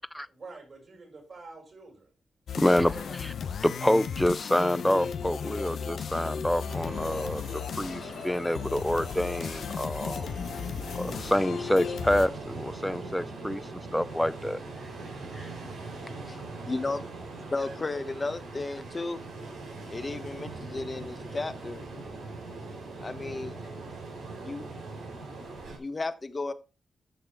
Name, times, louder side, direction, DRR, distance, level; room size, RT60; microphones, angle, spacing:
voice 1, 0.3-2.1 2.5-3.3 17.3-18.0, right 3 dB, 55° right, 5.7 m, -49 dB
sound 1, 2.5-12.3, left 7 dB, 75° left, 0.8 m, -35 dB
voice 2, 2.6-2.9 3.2-3.3 3.6-10.3 11.0-13.6 13.9-14.6 15.3-15.5, left 1 dB, 5° left, 0.6 m, -27 dB
Ocean, 6.7-25.8, right 3 dB, 90° right, 4.2 m, -41 dB
voice 3, 16.6-17.1 17.4-19.2 19.9-21.8 23.0-23.6 24.4-24.6 25.3-25.4 25.8-26.5, left 3 dB, 35° left, 1.2 m, -34 dB
10.0 x 6.7 x 4.5 m
cardioid pair, 55°, 0 cm